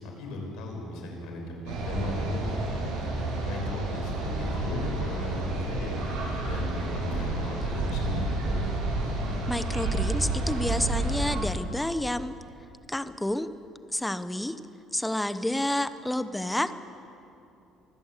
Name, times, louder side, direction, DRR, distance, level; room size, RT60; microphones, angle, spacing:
voice 1, 0.0-2.9 3.2-6.1 6.5-8.6, left 1 dB, 75° left, 1 dB, 6.1 m, -36 dB
sound 1, 1.7-11.4, right 2 dB, 80° right, 7.4 m, -30 dB
voice 2, 9.5-12.4 12.9-13.5 13.9-14.6 14.9-16.8, left 1 dB, 5° left, 12 dB, 0.9 m, -29 dB
24.5 x 15.5 x 8.3 m, 2.8 s
cardioid pair, 120°, 0 cm